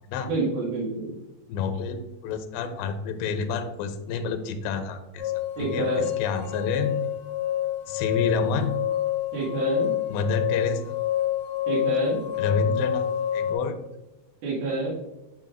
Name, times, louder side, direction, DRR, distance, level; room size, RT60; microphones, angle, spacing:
voice 1, 0.3-1.1 5.6-6.1 9.3-9.9 11.7-12.2 14.4-14.9, right 3 dB, 75° right, -5 dB, 3.7 m, -28 dB
voice 2, 1.5-5.3 5.6-7.0 7.9-8.8 10.1-11.0 12.4-13.1 13.3-13.8, left 4 dB, 80° left, 8 dB, 2.4 m, -29 dB
sound 1, 5.2-13.5, left 11 dB, 50° left, 2.3 m, -27 dB
8.5 x 5.8 x 2.5 m, 1.0 s
omnidirectional pair, 4.5 m